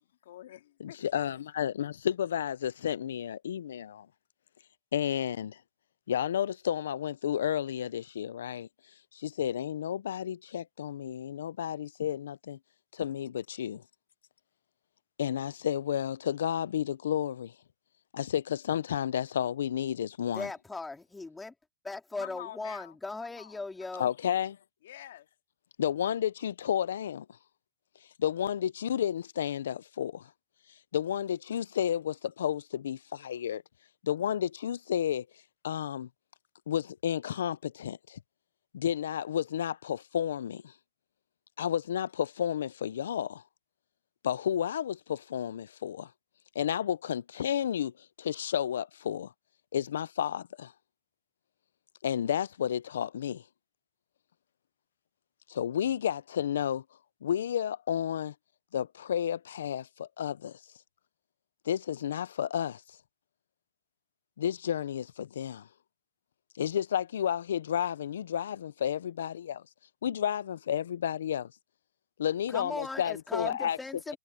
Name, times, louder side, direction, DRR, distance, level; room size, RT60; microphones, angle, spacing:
voice 1, 0.2-1.0 22.2-23.0 23.3-23.6 23.9-24.1 24.8-25.3, left 13 dB, 65° left, 2.4 m, -47 dB
voice 2, 0.8-4.1 4.9-5.6 6.1-8.7 9.1-12.6 12.9-13.8 15.2-17.5 18.1-20.5 24.0-24.6 25.8-27.3 28.2-30.3 30.9-33.6 34.0-35.3 35.6-36.1 36.7-38.2 38.7-40.7 41.6-43.4 44.2-46.1 46.5-49.3 49.7-50.7 52.0-53.4 55.5-56.8 57.2-58.3 58.7-60.6 61.7-62.8 64.4-65.7 66.6-69.6 70.0-71.5 72.2-73.8, left 9 dB, 85° left, 0.5 m, -31 dB
voice 3, 20.3-21.5 21.8-24.1 72.5-74.2, left 3 dB, 5° left, 2.4 m, -38 dB
supercardioid pair, 160°, 0 cm